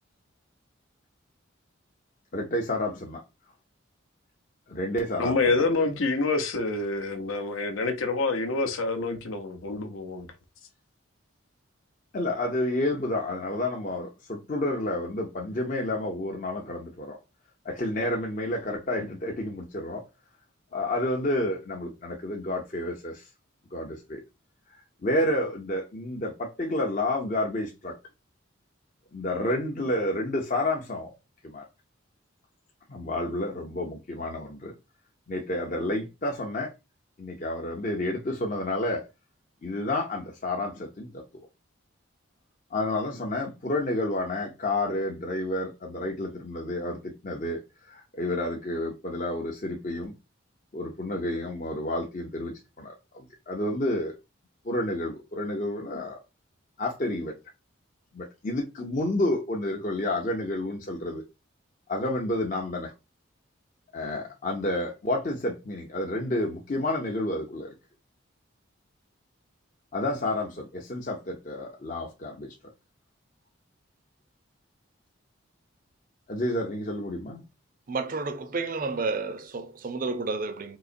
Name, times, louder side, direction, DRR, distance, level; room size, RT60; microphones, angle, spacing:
voice 1, 2.3-3.2 4.7-5.6 12.1-17.2 17.6-20.0 20.7-23.3 23.7-24.2 25.0-27.9 29.1-31.1 31.4-31.6 32.9-34.7 35.3-36.7 37.2-39.1 39.6-41.2 42.7-47.6 47.9-50.1 50.7-54.2 54.6-56.2 56.8-57.3 58.1-61.2 61.9-62.9 63.9-67.7 69.9-72.5 76.3-77.4, left 1 dB, 40° left, 0.6 m, -30 dB
voice 2, 5.2-10.3, left 3 dB, 80° left, 0.7 m, -27 dB
voice 3, 77.9-80.8, right 3 dB, 40° right, 0.5 m, -31 dB
3.9 x 2.9 x 2.5 m
head